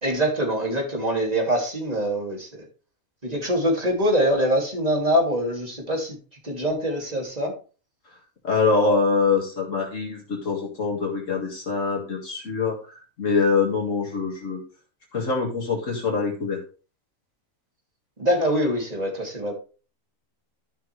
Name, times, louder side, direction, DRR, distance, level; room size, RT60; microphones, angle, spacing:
voice 1, 0.0-2.6 3.2-6.2 6.4-7.5 18.2-19.5, equal, 25° right, -1 dB, 2.8 m, -24 dB
voice 2, 8.4-10.2 10.5-12.8 13.2-14.6 15.1-16.6, left 4 dB, 60° left, -1 dB, 2.1 m, -24 dB
12.5 x 5.8 x 3.2 m, 0.36 s
omnidirectional pair, 1.5 m